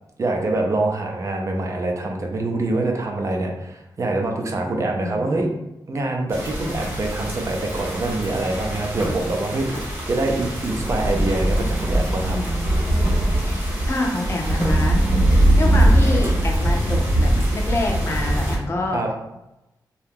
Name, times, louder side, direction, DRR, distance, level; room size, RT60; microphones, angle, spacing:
voice 1, 0.2-5.5 5.9-12.4 18.9-19.1, right 2 dB, 40° right, 2 dB, 0.5 m, -25 dB
voice 2, 4.8-5.3 12.3-13.0 13.5-15.0 15.3-19.1, left 1 dB, 35° left, 0 dB, 0.5 m, -27 dB
sound 1, 6.3-18.6, right 1 dB, 25° right, 1.0 m, -21 dB
2.7 x 2.3 x 3.5 m, 0.92 s
wide cardioid pair, 135°, 8 cm